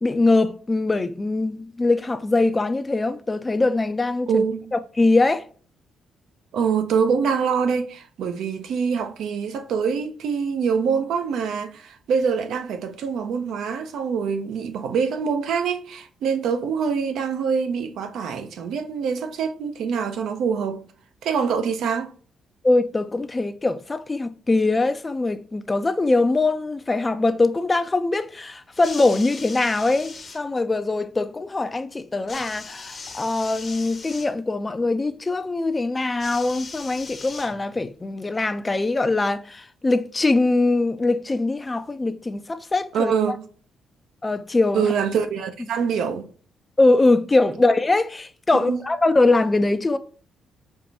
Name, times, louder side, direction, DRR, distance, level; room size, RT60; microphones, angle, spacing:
voice 1, 0.0-4.4 4.7-5.4 22.6-43.1 44.2-44.9 46.8-50.0, left 2 dB, 20° left, 0.4 m, -22 dB
voice 2, 4.3-4.7 6.5-20.9 21.2-22.1 42.9-43.4 44.7-46.3 48.6-48.8, right 6 dB, 75° right, 0.6 m, -25 dB
sound 1, 28.7-30.4 32.3-34.3 36.2-37.9 38.9-39.0, left 4 dB, 40° left, 0.8 m, -39 dB
4.6 x 2.5 x 2.7 m
cardioid pair, 90°, 0 cm